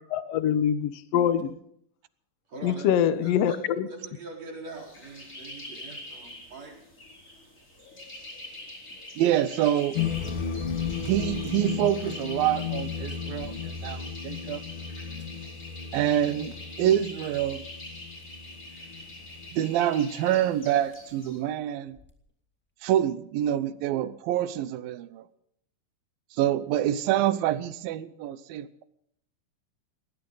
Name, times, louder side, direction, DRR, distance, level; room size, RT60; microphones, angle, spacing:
voice 1, 0.1-1.5 2.6-3.9, left 9 dB, 75° left, 1.4 m, -24 dB
voice 2, 2.5-2.9 3.2-3.6 3.9-6.7, right 3 dB, 45° right, 5.3 m, -43 dB
sound 1, 4.7-21.4, left 1 dB, 20° left, 4.8 m, -44 dB
sound 2, 8.0-8.1 9.9-11.7 12.1-12.2 12.6-12.7 13.1-14.2 15.2-15.3 16.7-16.8 17.4-17.5 18.2-18.4 19.8-19.9 20.1-20.2 21.9-22.2 22.9-23.0, left 2 dB, 5° left, 1.2 m, -44 dB
voice 3, 9.2-10.0 11.0-14.6 15.9-17.6 19.5-22.0 22.8-25.2 26.4-28.8, right 12 dB, 85° right, 2.6 m, -26 dB
sound 3, 9.9-19.5, left 7 dB, 60° left, 1.4 m, -35 dB
19.0 x 19.0 x 3.9 m
omnidirectional pair, 4.1 m